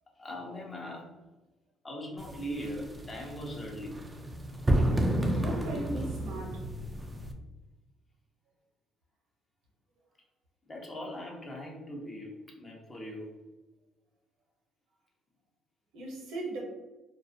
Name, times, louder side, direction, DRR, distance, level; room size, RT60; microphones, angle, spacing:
voice 1, 0.2-1.1 1.8-4.0 10.7-12.3 12.6-13.4, equal, 30° left, 0 dB, 0.6 m, -40 dB
sound 1, 2.2-7.3, right 1 dB, 15° right, 0.3 m, -31 dB
voice 2, 5.3-6.7 15.9-16.6, right 2 dB, 90° right, -2 dB, 0.8 m, -37 dB
2.4 x 2.1 x 2.6 m, 1.1 s
cardioid pair, 100°, 0 cm